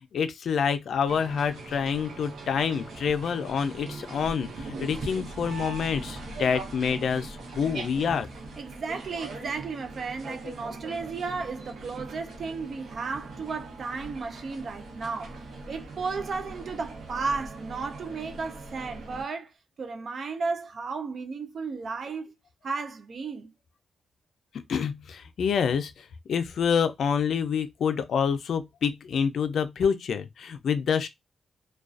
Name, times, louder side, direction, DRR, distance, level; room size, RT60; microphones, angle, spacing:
voice 1, 0.1-8.3 24.7-31.1, left 7 dB, 70° left, 0.3 m, -27 dB
sound 1, 1.0-19.2, right 3 dB, 85° right, 0.8 m, -41 dB
voice 2, 8.6-19.5 19.8-22.3 22.6-23.5, right 4 dB, 55° right, 0.5 m, -34 dB
2.4 x 2.2 x 2.3 m
cardioid pair, 95°, 0 cm